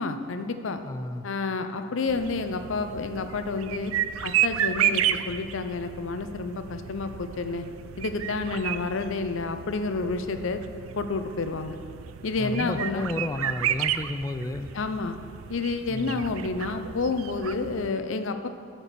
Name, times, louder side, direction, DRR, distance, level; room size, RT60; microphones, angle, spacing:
voice 1, 0.0-0.8 1.2-3.9 4.2-7.7 8.0-10.6 11.0-11.8 12.2-13.1 14.7-15.2 15.5-18.5, left 3 dB, 70° left, 8 dB, 0.6 m, -29 dB
voice 2, 0.8-1.3 12.4-14.7 15.9-16.3, left 2 dB, 15° left, 10 dB, 0.3 m, -32 dB
sound 1, 2.1-17.9, right 10 dB, 85° right, 0.4 m, -32 dB
12.0 x 4.5 x 6.7 m, 2.3 s
head